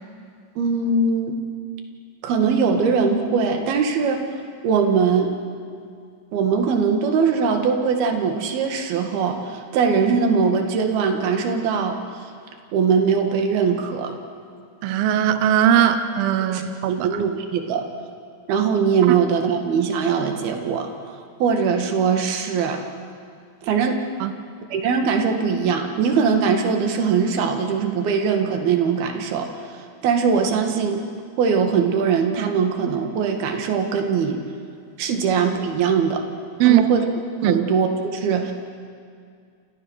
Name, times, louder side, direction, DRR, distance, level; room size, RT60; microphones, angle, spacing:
voice 1, 0.6-1.4 2.2-4.2 4.6-5.3 6.3-12.0 12.7-14.2 16.5-16.6 16.9-17.9 18.5-20.9 21.4-22.8 23.6-24.0 24.7-31.0 31.4-34.4 35.0-36.2 36.6-37.0 37.4-38.5, right 5 dB, 60° right, 4 dB, 3.3 m, -21 dB
voice 2, 14.8-17.2 19.1-19.2 24.2-24.3 36.6-36.8 37.4-37.6, right 10 dB, 90° right, 9 dB, 2.1 m, -19 dB
28.5 x 28.5 x 6.5 m, 2.2 s
omnidirectional pair, 5.8 m